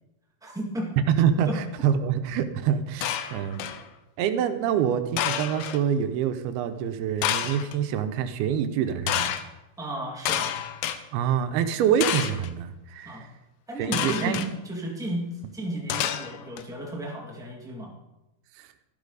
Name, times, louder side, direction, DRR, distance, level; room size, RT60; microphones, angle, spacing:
voice 1, 0.4-0.9 1.5-1.8 9.8-10.5 13.0-13.3 13.7-17.9, right 1 dB, 5° right, -4 dB, 0.4 m, -34 dB
voice 2, 1.0-3.6 4.2-9.3 11.1-13.3 13.8-14.4, right 8 dB, 80° right, 9 dB, 2.7 m, -26 dB
sound 1, 3.0-3.8 5.2-5.8 7.2-7.8 9.1-9.4 10.3-11.0 12.0-12.5 13.9-14.5 15.9-16.6, left 10 dB, 90° left, 2.9 m, -28 dB
13.0 x 13.0 x 4.0 m, 0.96 s
omnidirectional pair, 4.6 m